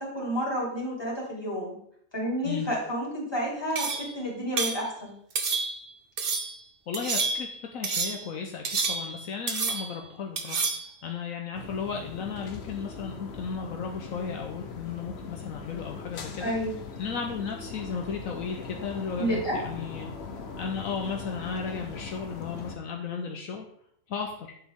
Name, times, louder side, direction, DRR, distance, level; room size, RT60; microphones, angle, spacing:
voice 1, 0.0-1.8 2.1-5.1 16.4-16.7 19.2-19.6, equal, 15° left, -4 dB, 3.3 m, -30 dB
sound 1, 3.8-4.1 4.6-4.8 5.4-5.9 6.2-6.6 6.9-7.5 7.8-8.3 8.6-9.2 9.5-10.0 10.4-10.9, right 4 dB, 45° right, 1.1 m, -29 dB
voice 2, 6.9-16.5 17.0-20.1 20.6-23.7 24.1-24.5, left 6 dB, 70° left, 2 dB, 1.2 m, -35 dB
sound 2, 11.5-22.8, left 4 dB, 50° left, 1.1 m, -40 dB
9.2 x 7.3 x 3.6 m, 0.69 s
omnidirectional pair, 1.5 m